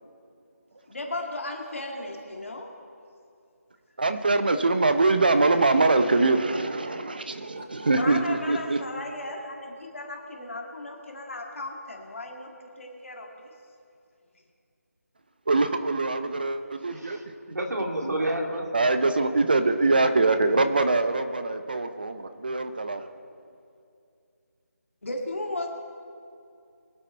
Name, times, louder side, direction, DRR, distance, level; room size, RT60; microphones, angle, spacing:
voice 1, 0.9-2.7 7.6-12.5 12.8-13.5 25.0-25.7, left 2 dB, 50° left, 0 dB, 2.0 m, -35 dB
voice 2, 4.0-8.9 15.5-17.3 18.7-23.1, right 3 dB, 35° right, 9 dB, 0.6 m, -23 dB
voice 3, 17.5-18.7, right 1 dB, 85° right, 1 dB, 2.5 m, -29 dB
22.5 x 8.7 x 4.4 m, 2.5 s
figure-of-eight pair, 175°, 9 cm